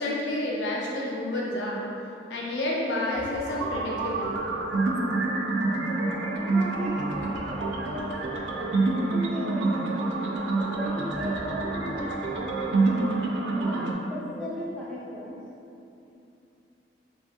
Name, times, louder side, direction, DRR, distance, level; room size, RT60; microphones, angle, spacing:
voice 1, 0.0-1.8 2.3-4.4 14.2-14.4, left 1 dB, 75° left, -4 dB, 0.5 m, -30 dB
sound 1, 3.1-13.9, right 3 dB, 70° right, 0.3 m, -27 dB
voice 2, 5.9-8.7 9.1-13.3 13.6-15.4, equal, 5° left, -7 dB, 0.4 m, -37 dB
2.8 x 2.3 x 2.7 m, 2.7 s
head